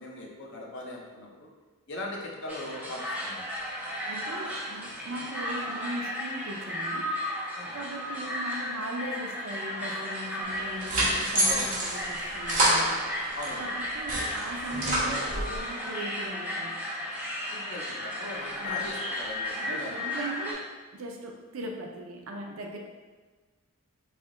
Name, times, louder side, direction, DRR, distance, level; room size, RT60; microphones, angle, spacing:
voice 1, 0.0-1.5 1.9-3.5 7.5-7.8 11.4-11.7 13.3-13.7 17.5-20.0, left 1 dB, 55° left, -1 dB, 0.7 m, -39 dB
sound 1, 2.5-20.5, left 1 dB, 5° right, 0.7 m, -34 dB
voice 2, 4.1-7.2 7.7-13.0 13.6-16.8 18.5-18.8 19.5-22.8, right 1 dB, 70° right, 1 dB, 0.5 m, -39 dB
sound 2, 10.5-13.5 13.9-15.6, right 1 dB, 35° right, 1.2 m, -28 dB
3.3 x 2.7 x 3.7 m, 1.4 s
head